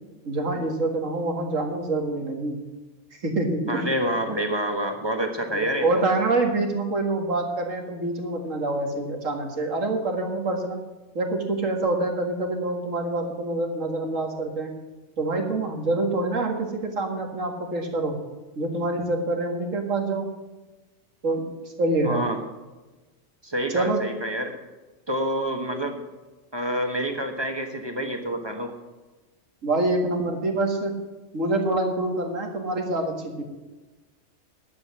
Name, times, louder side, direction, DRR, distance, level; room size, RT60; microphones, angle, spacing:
voice 1, 0.2-2.6 3.2-3.8 5.5-10.8 11.1-14.7 15.2-18.1 18.6-20.3 21.2-21.4 21.8-22.2 23.7-24.0 29.6-30.9 31.3-33.4, right 2 dB, 75° right, 2 dB, 2.3 m, -26 dB
voice 2, 3.7-6.0 22.0-22.4 23.4-24.5 25.1-26.0 26.5-28.7, right 1 dB, 20° right, 4 dB, 1.3 m, -27 dB
11.5 x 7.9 x 7.3 m, 1.2 s
omnidirectional pair, 1.4 m